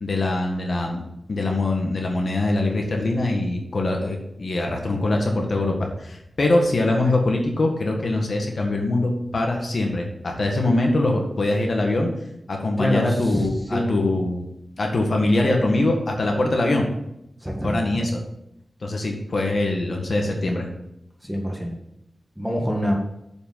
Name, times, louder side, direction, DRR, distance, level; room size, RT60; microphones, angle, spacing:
voice 1, 0.0-1.0 1.3-12.1 12.5-14.5 14.8-16.9 17.6-18.2 18.8-20.7, left 2 dB, 60° left, 1 dB, 1.7 m, -23 dB
voice 2, 12.8-14.0 17.4-18.0 21.2-21.7 22.4-22.9, equal, 5° right, -1 dB, 2.0 m, -25 dB
7.3 x 5.3 x 6.9 m, 0.80 s
wide cardioid pair, 100°, 0 cm